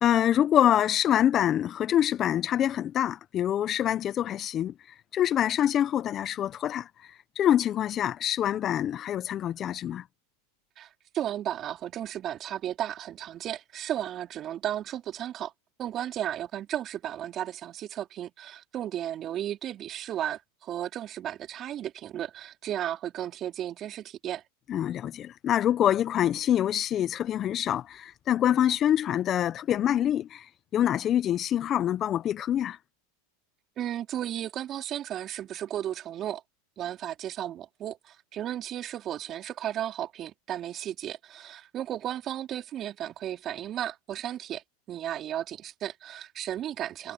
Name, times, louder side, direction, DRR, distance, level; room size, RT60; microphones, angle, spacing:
voice 1, 0.0-10.0 24.7-32.8, left 11 dB, 35° left, 0.8 m, -26 dB
voice 2, 10.8-15.5 15.8-24.4 33.8-36.4 36.8-47.1, right 11 dB, 40° right, 3.9 m, -34 dB
hypercardioid pair, 105°, 0 cm